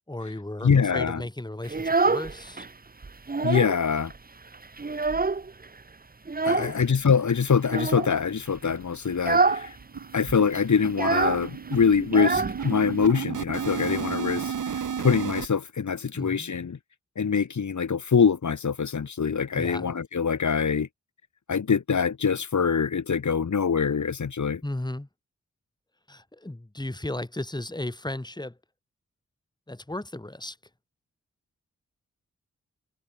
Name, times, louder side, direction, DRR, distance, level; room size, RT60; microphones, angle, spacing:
voice 1, 0.1-2.7 6.4-6.8 16.1-16.5 19.5-19.9 24.6-25.1 26.1-28.6 29.7-30.6, left 1 dB, 15° left, 3.0 m, -35 dB
voice 2, 0.6-1.2 3.4-4.1 6.4-9.8 10.1-16.8 17.2-20.9 21.5-24.6, left 6 dB, 70° left, 3.3 m, -24 dB
Child speech kid speaking, 1.6-2.7 3.0-3.8 4.1-4.2 4.5-5.6 6.3-6.8 7.6-8.1 8.6-8.8 9.1-9.7 9.9-10.0 10.3-13.1, right 3 dB, 30° right, 1.1 m, -26 dB
sound 1, 8.2-8.3 8.6-8.7 9.1-9.3 9.5-15.5, right 7 dB, 80° right, 7.6 m, -33 dB
cardioid pair, 40°, 30 cm